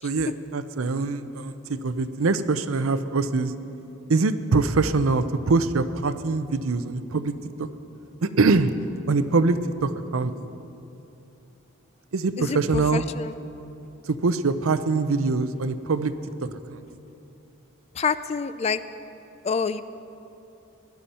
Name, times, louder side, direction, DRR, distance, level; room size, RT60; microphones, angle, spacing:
voice 1, 0.0-3.5 4.1-7.3 7.6-7.7 8.2-8.7 9.1-10.3 12.1-13.1 14.1-16.1 16.4-16.8, right 3 dB, 80° right, 12 dB, 0.6 m, -23 dB
voice 2, 12.4-13.3 18.0-18.8 19.4-19.8, left 5 dB, 30° left, 14 dB, 0.3 m, -27 dB
18.5 x 12.0 x 4.3 m, 2.9 s
head